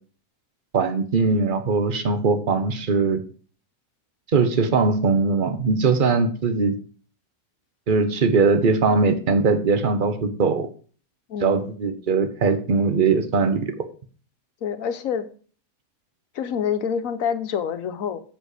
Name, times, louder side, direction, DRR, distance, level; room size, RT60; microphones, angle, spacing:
voice 1, 0.7-3.2 4.3-6.7 7.9-10.7 11.4-13.9, right 4 dB, 35° right, 1.0 m, -20 dB
voice 2, 11.3-11.7 14.6-15.3 16.3-18.2, left 7 dB, 65° left, 1.2 m, -27 dB
7.4 x 7.0 x 5.0 m
omnidirectional pair, 1.7 m